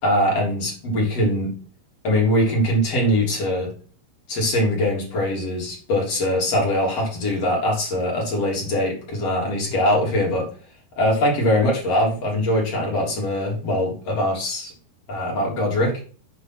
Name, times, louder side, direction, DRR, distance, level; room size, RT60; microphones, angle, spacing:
voice 1, 0.0-1.5 2.0-3.7 4.3-10.5 11.0-14.7 15.1-15.9, left 1 dB, 35° left, -2 dB, 4.1 m, -22 dB
8.4 x 6.0 x 6.2 m, 0.42 s
omnidirectional pair, 5.3 m